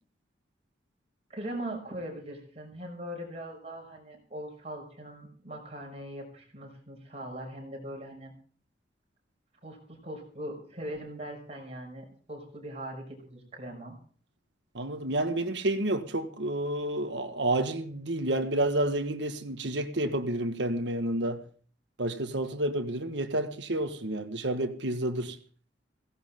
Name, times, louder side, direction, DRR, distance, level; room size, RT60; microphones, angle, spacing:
voice 1, 1.3-8.3 9.6-14.0, right 1 dB, 35° right, 6.2 m, -40 dB
voice 2, 14.7-21.4 22.0-25.4, right 1 dB, 75° right, 1.6 m, -30 dB
17.0 x 16.5 x 3.7 m
head